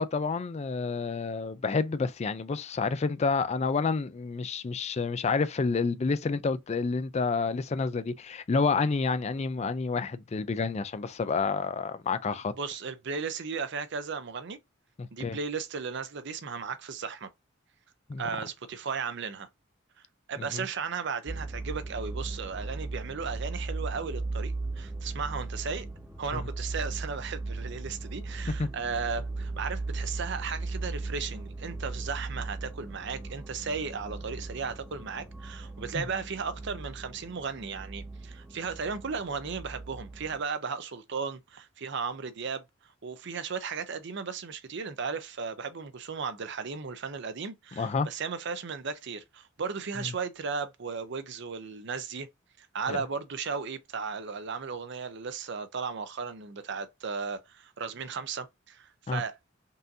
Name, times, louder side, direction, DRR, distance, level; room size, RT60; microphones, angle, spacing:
voice 1, 0.0-12.5 15.0-15.4 18.1-18.2 20.5-20.6 26.3-26.4 28.6-28.7 36.0-36.1 47.8-48.1 52.9-53.0 59.1-59.2, left 4 dB, 35° left, 0.4 m, -29 dB
voice 2, 12.3-14.6 15.1-17.3 18.2-19.5 20.3-25.9 26.2-42.6 43.0-52.3 52.6-59.3, right 5 dB, 60° right, 0.6 m, -35 dB
sound 1, 21.3-40.4, right 3 dB, 10° right, 0.7 m, -37 dB
5.4 x 2.6 x 2.7 m
head